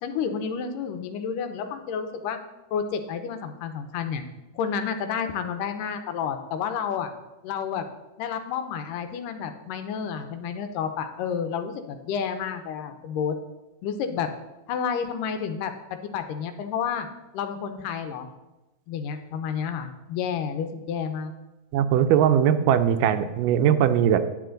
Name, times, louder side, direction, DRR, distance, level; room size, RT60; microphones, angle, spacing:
voice 1, 0.0-2.4 2.7-4.2 4.6-7.1 7.4-7.9 8.2-13.4 13.8-14.3 14.7-15.7 16.0-17.1 17.3-18.3 18.9-21.3, left 7 dB, 85° left, 7 dB, 2.3 m, -30 dB
voice 2, 21.7-24.3, right 9 dB, 85° right, 10 dB, 2.2 m, -20 dB
9.4 x 9.1 x 3.8 m, 1.0 s
omnidirectional pair, 3.8 m